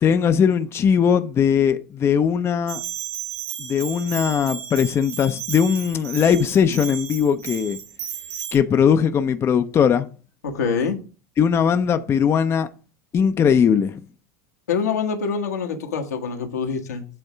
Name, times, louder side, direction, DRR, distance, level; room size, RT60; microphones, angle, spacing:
voice 1, 0.0-2.8 3.6-7.8 8.5-10.1 11.4-12.7 13.1-14.0, left 7 dB, 30° left, 0.5 m, -19 dB
Bell, 2.7-8.6, right 9 dB, 65° right, 3.7 m, -33 dB
voice 2, 10.4-11.0 14.7-17.1, left 5 dB, 85° left, 1.2 m, -25 dB
7.9 x 3.5 x 5.0 m
hypercardioid pair, 90°, 8 cm